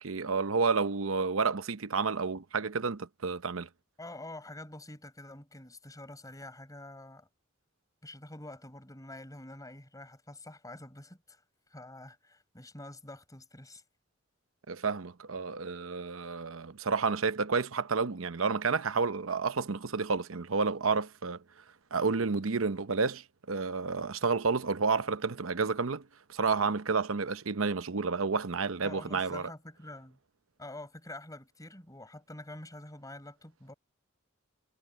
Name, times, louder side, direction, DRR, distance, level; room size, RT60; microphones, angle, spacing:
voice 1, 0.0-3.7 14.7-21.4 21.9-29.5, right 4 dB, 85° right, 0.9 m, -30 dB
voice 2, 4.0-7.3 8.0-11.4 11.7-13.8 28.8-30.2 30.6-33.7, left 1 dB, 20° left, 7.2 m, -47 dB
head